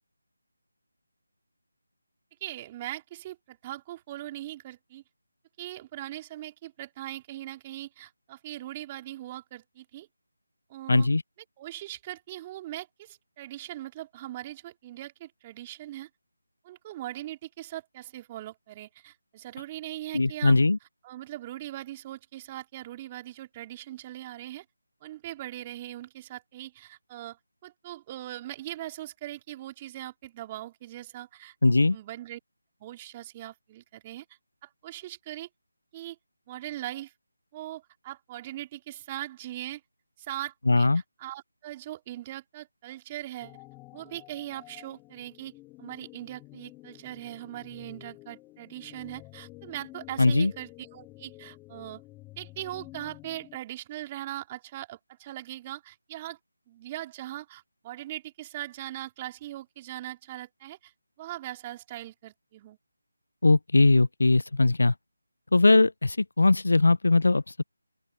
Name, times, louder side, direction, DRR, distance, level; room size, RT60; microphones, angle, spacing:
voice 1, 2.4-5.0 5.6-10.1 10.7-11.1 11.6-16.1 16.6-20.6 21.0-24.6 25.0-31.5 31.9-32.4 32.8-35.5 35.9-36.2 36.5-37.1 37.5-39.8 40.2-43.6 43.9-45.5 45.8-52.0 52.4-56.4 56.7-60.9 61.2-62.8, right 14 dB, 20° right, 4.1 m, -40 dB
voice 2, 10.9-11.2 20.1-20.8 31.6-32.0 40.7-41.0 50.2-50.5 63.4-64.9 65.5-67.6, left 3 dB, 70° left, 0.6 m, -20 dB
sound 1, 43.4-53.6, left 20 dB, 10° left, 2.3 m, -50 dB
open air
figure-of-eight pair, 165°, 0 cm